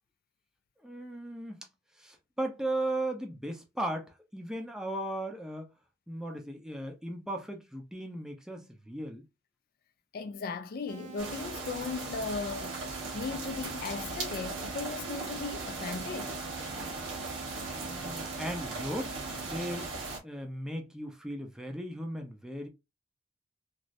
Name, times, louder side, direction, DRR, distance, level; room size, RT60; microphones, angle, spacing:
voice 1, 0.8-1.7 1.9-5.7 6.1-9.2 17.8-19.9 20.2-22.7, right 1 dB, 5° right, 0.5 m, -37 dB
voice 2, 10.1-16.4, left 4 dB, 50° left, 0.3 m, -37 dB
sound 1, 10.9-19.9, right 6 dB, 35° right, 0.7 m, -46 dB
sound 2, 11.2-20.2, right 3 dB, 85° right, 1.2 m, -38 dB
3.1 x 2.5 x 2.5 m
head